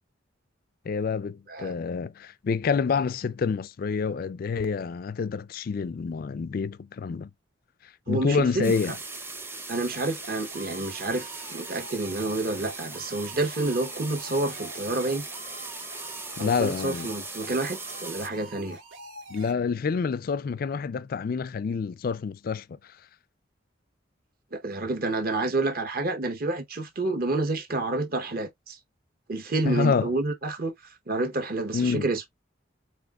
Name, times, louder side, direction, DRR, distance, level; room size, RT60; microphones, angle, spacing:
voice 1, 0.9-7.3 8.1-9.0 16.4-17.1 19.3-22.8 29.7-30.1 31.7-32.1, left 5 dB, 50° left, 0.3 m, -27 dB
voice 2, 8.1-8.7 9.7-15.2 16.4-18.8 24.5-28.8 29.3-30.7 31.1-32.2, right 2 dB, 50° right, 0.9 m, -29 dB
sound 1, 8.6-18.3, right 3 dB, 10° right, 0.6 m, -39 dB
sound 2, 9.9-19.5, right 2 dB, 80° right, 1.8 m, -46 dB
7.7 x 2.9 x 2.3 m
head